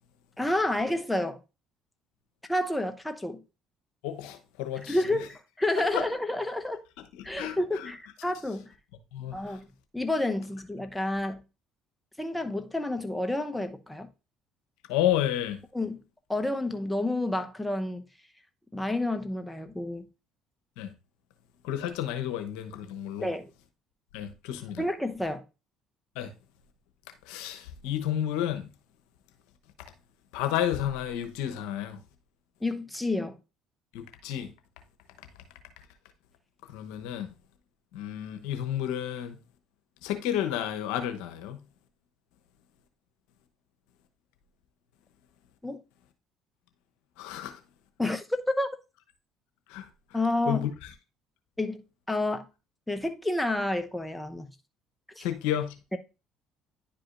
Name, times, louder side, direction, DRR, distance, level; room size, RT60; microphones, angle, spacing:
voice 1, 0.4-1.4 2.5-3.4 4.9-6.8 7.2-8.7 9.3-9.7 9.9-11.4 12.2-14.1 15.7-16.0 16.3-18.0 18.7-20.1 23.2-23.5 24.8-25.4 32.6-33.4 45.6-45.8 48.0-48.2 48.6-48.7 50.1-50.7 51.6-52.5 52.9-54.5 55.2-55.3, left 1 dB, 5° left, 0.8 m, -29 dB
voice 2, 4.0-5.0 5.9-6.0 7.0-7.1 7.3-7.9 9.1-9.6 14.9-15.6 20.8-20.9 21.6-23.3 24.1-24.8 26.1-26.3 27.2-28.7 30.3-32.0 33.9-34.5 36.6-37.3 37.9-39.4 40.0-41.6 47.2-47.6 49.7-50.2 50.5-50.9 55.2-55.8, left 11 dB, 80° left, 0.9 m, -31 dB
10.0 x 4.9 x 2.5 m
supercardioid pair, 70°, 0 cm